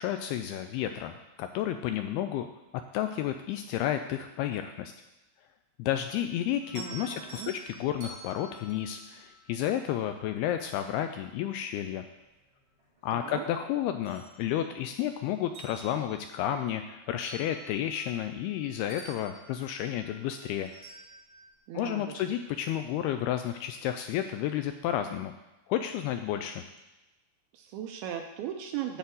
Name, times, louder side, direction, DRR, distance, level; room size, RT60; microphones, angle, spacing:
voice 1, 0.0-2.5 2.9-4.9 5.8-12.1 13.0-20.7 21.7-25.3 25.7-26.6, left 11 dB, 85° left, 7 dB, 2.3 m, -31 dB
sound 1, 6.6-10.0 11.6-11.7 12.2-13.4 13.8-15.0 15.4-18.6 18.9-21.6, right 2 dB, 45° right, 2.3 m, -50 dB
voice 2, 6.8-7.5 13.1-13.5 21.7-22.3 27.5-29.0, right 10 dB, 85° right, 4 dB, 2.4 m, -38 dB
10.5 x 4.6 x 7.7 m, 1.0 s
omnidirectional pair, 4.9 m